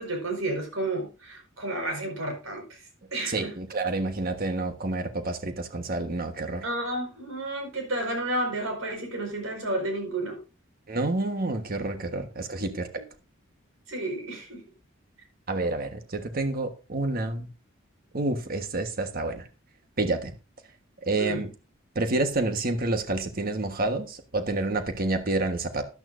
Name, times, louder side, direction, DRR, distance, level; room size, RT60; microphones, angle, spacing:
voice 1, 0.0-2.6 3.1-3.6 6.6-10.4 12.5-12.8 13.9-14.6 21.2-21.5, right 1 dB, 85° right, 5.0 m, -31 dB
voice 2, 3.3-6.6 10.9-12.9 15.5-17.5 18.1-19.4 20.0-20.3 21.1-21.5 21.9-25.8, right 2 dB, 45° right, 1.3 m, -28 dB
12.5 x 12.0 x 2.6 m
head